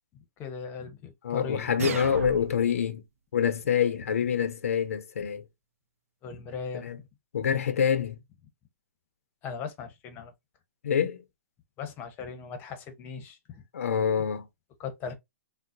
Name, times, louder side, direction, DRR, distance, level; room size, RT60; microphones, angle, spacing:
voice 1, 0.4-1.7 6.2-6.9 9.4-10.3 11.8-13.6 14.8-15.1, left 6 dB, 25° left, 0.8 m, -38 dB
voice 2, 1.2-3.0 3.3-5.4 6.8-7.0 7.3-8.2 10.8-11.2 13.7-14.5, left 8 dB, 80° left, 0.5 m, -26 dB
sound 1, 1.8-2.8, right 6 dB, 75° right, 0.5 m, -34 dB
3.8 x 2.1 x 2.5 m
hypercardioid pair, 140°, 8 cm